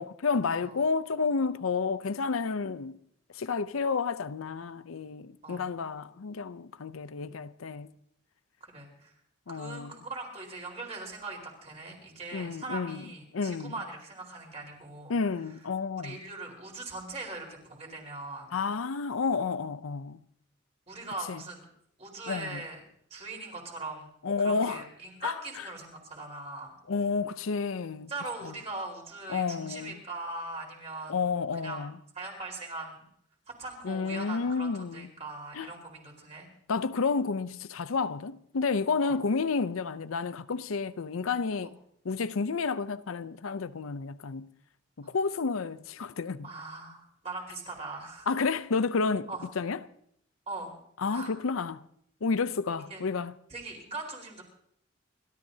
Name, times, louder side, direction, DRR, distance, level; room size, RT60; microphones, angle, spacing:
voice 1, 0.0-3.0 3.3-7.9 9.5-10.0 12.3-13.0 13.3-13.8 15.1-16.2 18.5-20.2 21.3-21.4 22.3-22.6 24.2-24.8 25.2-25.3 26.9-28.1 28.4-28.5 29.3-30.0 31.1-31.9 33.8-35.1 35.5-35.7 36.7-41.7 42.0-44.5 45.0-46.5 48.3-49.3 49.6-49.8 51.0-51.8 52.2-53.3, left 4 dB, 85° left, 0.6 m, -30 dB
voice 2, 8.6-9.1 9.5-15.1 16.0-18.5 20.9-21.7 22.0-22.8 23.1-24.1 24.4-26.7 28.1-31.2 31.5-31.8 32.1-33.1 33.5-36.5 39.0-39.2 45.0-45.1 46.4-48.3 49.3-49.5 50.5-50.7 51.1-51.3 52.9-53.0 53.5-54.4, right 3 dB, 30° right, 4.4 m, -40 dB
29.5 x 14.0 x 2.8 m
head